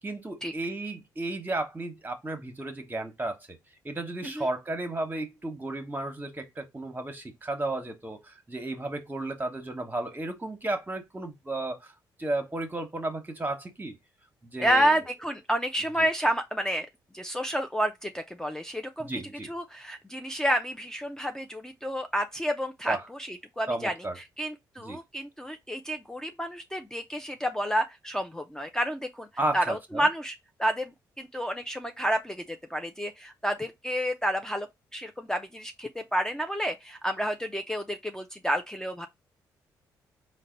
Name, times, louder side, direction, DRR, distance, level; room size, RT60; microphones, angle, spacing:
voice 1, 0.0-3.6 3.8-11.9 12.2-14.0 14.4-15.0 16.0-16.1 19.0-19.5 22.9-23.1 23.7-24.2 24.8-25.0 29.4-30.1, right 2 dB, 20° right, 1.1 m, -33 dB
voice 2, 14.6-16.9 17.1-19.1 19.5-23.9 24.4-29.3 29.5-30.3 30.6-32.4 32.7-34.7 34.9-39.1, equal, 5° left, 0.5 m, -30 dB
3.9 x 2.2 x 3.8 m
hypercardioid pair, 50°, 9 cm